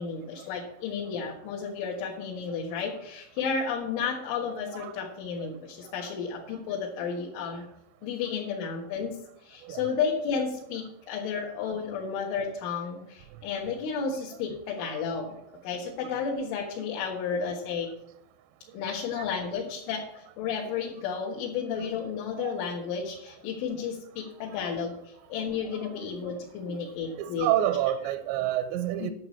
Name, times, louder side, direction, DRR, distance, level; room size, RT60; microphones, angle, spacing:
voice 1, 0.0-7.6 8.0-15.4 15.6-17.9 18.7-27.5 29.0-29.1, left 6 dB, 80° left, -2 dB, 3.9 m, -32 dB
voice 2, 27.2-29.1, right 12 dB, 85° right, 10 dB, 2.7 m, -28 dB
11.0 x 6.8 x 8.4 m, 0.76 s
omnidirectional pair, 5.5 m